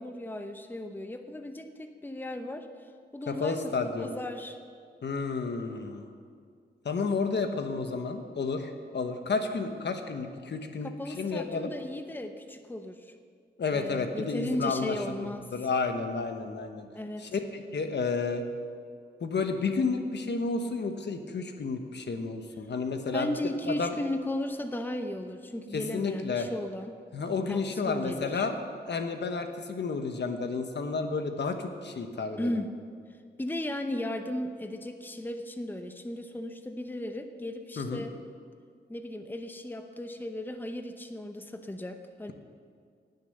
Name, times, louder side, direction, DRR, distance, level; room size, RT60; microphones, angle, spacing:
voice 1, 0.0-4.6 10.8-13.1 13.7-15.5 16.9-17.3 23.1-27.0 27.5-28.4 32.4-32.7 33.4-38.1 38.9-42.3, left 1 dB, 10° left, 7 dB, 0.8 m, -36 dB
voice 2, 3.3-4.1 5.0-6.1 6.8-11.7 13.6-16.9 17.2-18.4 19.2-23.3 23.7-24.0 25.7-26.5 27.1-28.5 28.9-32.6 37.8-38.0, left 4 dB, 70° left, 6 dB, 1.1 m, -31 dB
18.5 x 6.8 x 6.6 m, 2.1 s
wide cardioid pair, 90°, 19 cm